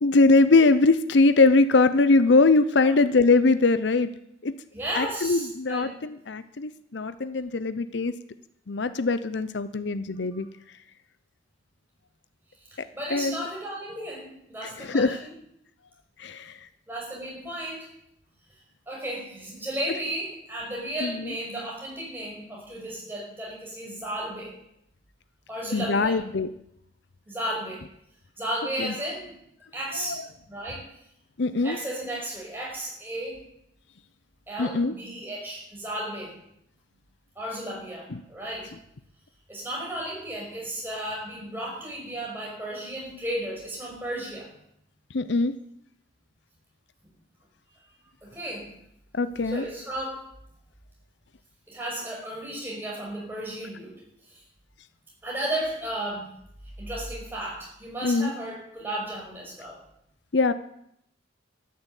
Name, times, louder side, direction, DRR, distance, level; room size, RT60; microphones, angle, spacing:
voice 1, 0.0-4.1 4.4-4.5 5.0-8.1 8.7-10.5 13.1-13.4 14.6-15.2 16.2-16.6 21.0-21.3 25.7-26.5 28.8-28.9 29.9-30.3 31.4-31.8 34.6-34.9 38.1-38.2 45.1-45.6 49.1-49.6 58.0-58.3 60.3-60.5, left 3 dB, 65° left, 14 dB, 0.7 m, -22 dB
voice 2, 4.7-5.9 10.3-10.5 12.7-15.3 16.9-17.9 18.9-24.5 25.5-26.2 27.3-27.8 28.4-29.3 29.7-30.2 30.5-30.9 31.6-33.4 34.5-36.3 37.4-38.7 39.5-44.5 48.2-48.7 49.4-50.2 51.7-54.0 54.3-54.4 55.2-56.3 56.8-59.8, right 1 dB, 10° right, -3 dB, 5.9 m, -34 dB
13.5 x 10.5 x 8.2 m, 0.75 s
head